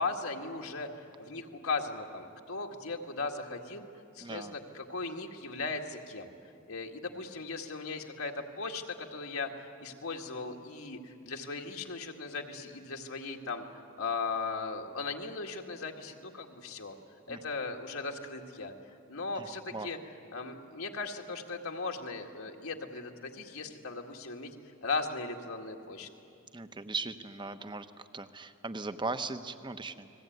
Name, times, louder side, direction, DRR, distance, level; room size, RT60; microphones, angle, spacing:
voice 1, 0.0-3.9 4.1-6.3 6.7-13.6 14.0-16.9 17.3-20.0 20.3-24.6 24.8-26.1, left 4 dB, 75° left, 2 dB, 2.0 m, -37 dB
voice 2, 4.2-4.6 17.3-17.4 19.3-19.9 26.5-30.1, right 3 dB, 20° right, 10 dB, 1.0 m, -39 dB
30.0 x 21.0 x 9.4 m, 2.5 s
head